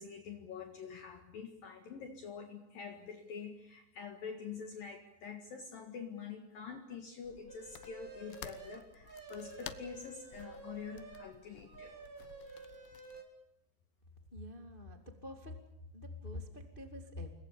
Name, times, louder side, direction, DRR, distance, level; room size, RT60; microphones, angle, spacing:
voice 1, 0.0-11.9, left 6 dB, 60° left, 5 dB, 3.3 m, -46 dB
sound 1, 7.2-13.2, left 12 dB, 85° left, 3.4 m, -53 dB
sound 2, 7.5-11.3 11.7-13.2, right 4 dB, 20° right, 4.4 m, -51 dB
voice 2, 14.3-15.6 15.9-17.3, left 2 dB, 20° left, 5 dB, 1.3 m, -46 dB
29.5 x 22.5 x 7.1 m, 0.86 s
omnidirectional pair, 5.1 m